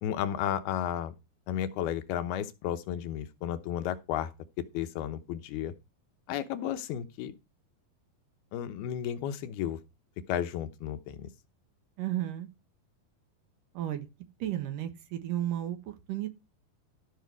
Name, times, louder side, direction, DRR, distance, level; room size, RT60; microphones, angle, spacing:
voice 1, 0.0-1.1 1.5-4.3 4.6-5.7 6.3-7.4 8.5-9.8 10.3-11.3, left 10 dB, 80° left, 2.8 m, -33 dB
voice 2, 12.0-12.5 13.7-14.1 14.4-16.3, right 12 dB, 65° right, 2.6 m, -33 dB
14.0 x 5.7 x 4.6 m
omnidirectional pair, 4.5 m